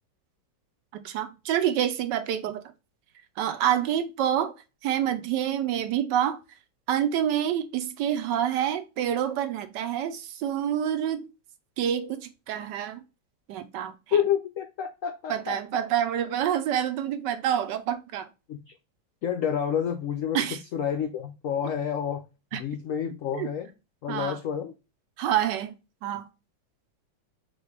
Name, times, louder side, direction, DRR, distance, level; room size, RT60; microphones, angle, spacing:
voice 1, 0.9-2.6 3.4-4.5 4.8-6.4 6.9-11.3 11.8-13.0 13.5-14.2 15.3-18.3 20.3-20.6 22.5-22.6 23.3-23.5 24.1-24.4 25.2-25.8 26.0-26.2, right 10 dB, 75° right, 1.2 m, -27 dB
voice 2, 14.1-15.6 18.5-18.7 19.2-22.2 22.5-23.7 24.0-24.7, left 8 dB, 80° left, 0.7 m, -29 dB
4.2 x 3.0 x 3.2 m
omnidirectional pair, 2.0 m